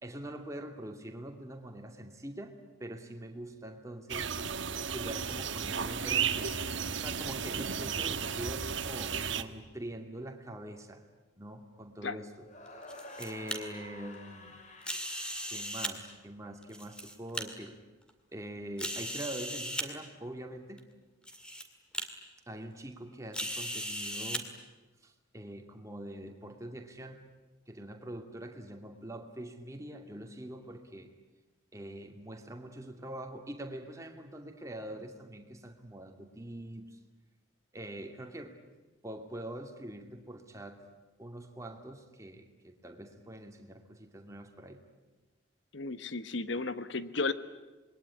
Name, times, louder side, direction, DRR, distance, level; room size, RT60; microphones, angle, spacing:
voice 1, 0.0-4.3 4.9-6.6 7.0-11.0 11.4-12.5 13.2-14.5 15.4-17.8 18.3-20.8 22.5-24.5 25.0-27.2 27.7-31.1 31.7-37.0 37.7-38.6 39.0-40.8 41.2-44.8, right 1 dB, 15° right, 4 dB, 2.6 m, -44 dB
sound 1, 4.1-9.4, right 7 dB, 70° right, 1.5 m, -34 dB
sound 2, 12.4-16.6, left 2 dB, 35° left, 3.4 m, -50 dB
sound 3, 12.7-13.6 14.8-15.9 16.6-17.4 18.1-18.2 18.8-19.9 20.8-20.9 21.3-21.6 21.9-22.1 23.3-24.4, equal, 5° left, 2.3 m, -37 dB
voice 2, 45.7-47.3, left 3 dB, 70° left, 13 dB, 1.2 m, -34 dB
27.0 x 21.5 x 10.0 m, 1.2 s
head